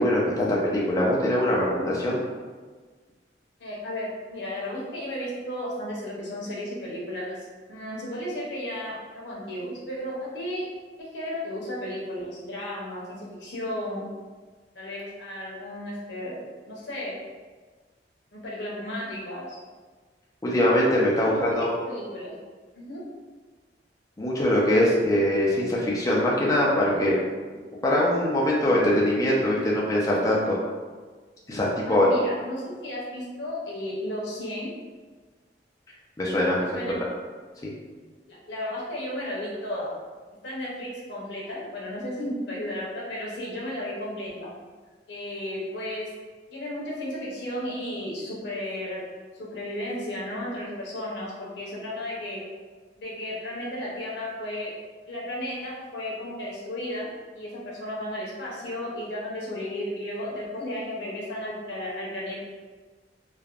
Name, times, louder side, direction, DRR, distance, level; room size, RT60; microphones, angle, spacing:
voice 1, 0.0-2.2 20.4-21.7 24.2-27.2 27.8-30.6 31.5-32.1 36.2-36.6 36.9-37.1 37.6-37.7, left 1 dB, 20° left, -5 dB, 0.4 m, -22 dB
voice 2, 3.6-10.7 11.0-14.1 14.7-16.4 16.7-17.2 18.3-19.6 21.1-22.3 22.7-23.0 31.8-34.7 36.7-37.0 38.3-39.9 40.4-44.5 45.1-46.1 46.5-49.0 49.3-52.4 53.0-54.7 55.1-57.1 57.3-62.4, left 1 dB, 85° left, -5 dB, 0.8 m, -34 dB
3.3 x 2.1 x 2.4 m, 1.4 s
head